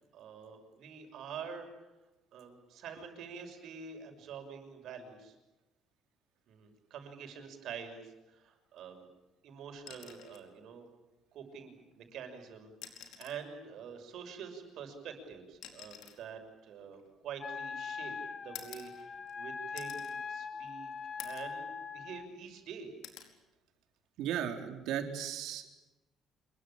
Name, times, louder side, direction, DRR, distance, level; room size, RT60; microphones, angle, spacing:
voice 1, 0.1-1.7 2.3-5.3 6.5-9.1 9.4-10.9 11.3-20.9 21.2-22.9, right 6 dB, 60° right, 5 dB, 6.3 m, -47 dB
sound 1, 9.8-10.5 11.9-12.0 12.7-13.5 14.7-17.7 18.5-19.4 19.8-20.2 20.6-20.7 21.2-21.6 22.0-22.6 23.0-23.4 24.8-25.0, left 9 dB, 75° left, 4.7 m, -50 dB
Wind instrument woodwind instrument, 17.4-22.3, left 5 dB, 30° left, 1.8 m, -41 dB
voice 2, 24.2-25.7, right 9 dB, 75° right, 5 dB, 4.0 m, -36 dB
27.0 x 23.0 x 8.9 m, 1.1 s
cardioid pair, 160°, 0 cm